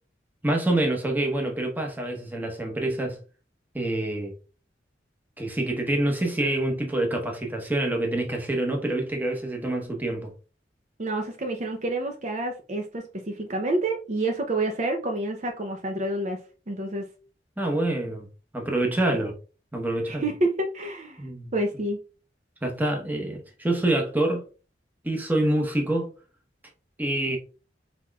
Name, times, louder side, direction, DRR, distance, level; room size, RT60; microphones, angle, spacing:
voice 1, 0.4-3.2 3.7-4.3 5.4-10.3 17.6-18.3 18.5-19.3 19.7-20.2 21.2-21.5 22.6-24.4 25.0-26.1 27.0-27.4, right 1 dB, 10° right, 0.9 m, -26 dB
voice 2, 11.0-16.4 16.7-17.1 19.1-19.2 20.1-21.2 21.5-22.0, right 2 dB, 40° right, 0.6 m, -28 dB
4.3 x 4.2 x 2.3 m
head